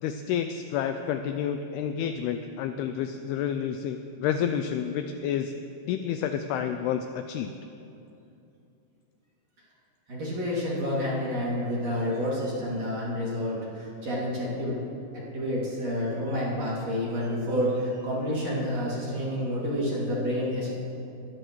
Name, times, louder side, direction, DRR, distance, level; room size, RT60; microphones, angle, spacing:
voice 1, 0.0-5.5 5.9-7.5, left 8 dB, 85° left, 8 dB, 2.3 m, -29 dB
voice 2, 10.1-14.8 15.1-20.7, equal, 40° right, -6 dB, 3.0 m, -29 dB
22.0 x 14.5 x 3.1 m, 2.7 s
omnidirectional pair, 5.0 m